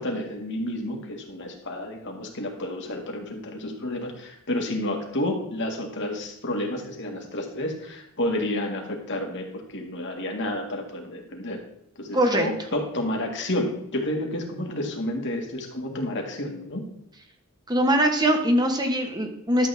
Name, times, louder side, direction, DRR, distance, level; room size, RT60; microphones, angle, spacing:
voice 1, 0.0-11.6 12.0-16.9, left 1 dB, 55° left, 2 dB, 1.9 m, -30 dB
voice 2, 12.1-12.5 17.7-19.7, right 1 dB, 20° right, 4 dB, 1.3 m, -22 dB
12.0 x 7.7 x 3.4 m, 0.78 s
head